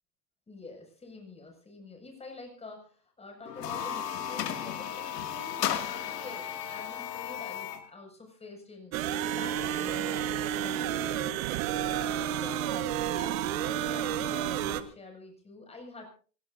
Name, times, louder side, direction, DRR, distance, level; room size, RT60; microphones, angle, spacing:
voice 1, 0.5-11.5 11.9-16.1, left 3 dB, 15° left, 2 dB, 6.9 m, -47 dB
sound 1, 3.5-7.9, left 9 dB, 85° left, 2.6 m, -34 dB
sound 2, 8.9-14.8, right 10 dB, 60° right, 1.7 m, -30 dB
26.0 x 17.5 x 2.8 m, 0.40 s
hypercardioid pair, 120°, 47 cm